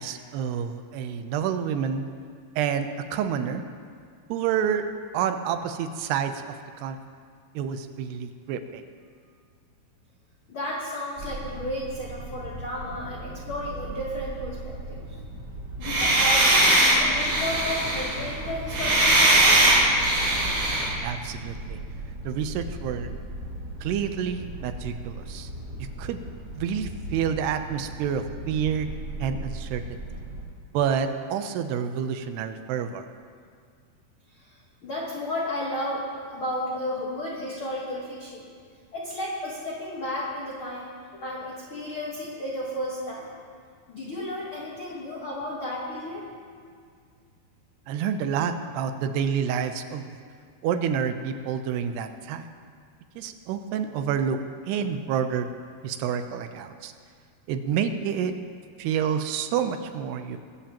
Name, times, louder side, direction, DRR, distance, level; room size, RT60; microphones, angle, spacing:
voice 1, 0.0-2.0 2.6-3.6 4.3-4.9 5.1-6.4 6.8-7.0 7.6-8.8 21.0-21.8 22.3-23.1 23.8-25.5 25.8-26.2 26.6-28.9 29.2-29.8 30.7-33.1 47.9-50.1 50.6-52.4 53.2-54.4 54.7-55.5 55.8-56.9 57.5-58.3 58.8-60.4, right 8 dB, 85° right, 8 dB, 2.8 m, -28 dB
voice 2, 10.5-15.0 15.8-19.6 34.4-34.6 34.8-38.5 38.9-40.9 41.2-43.3 43.9-46.3, left 1 dB, 75° left, -4 dB, 1.2 m, -33 dB
sound 1, 11.2-30.4, right 1 dB, 35° right, 1.7 m, -37 dB
sound 2, 15.8-20.9, right 1 dB, 60° right, 5.8 m, -20 dB
21.0 x 14.5 x 3.0 m, 2.1 s
omnidirectional pair, 4.7 m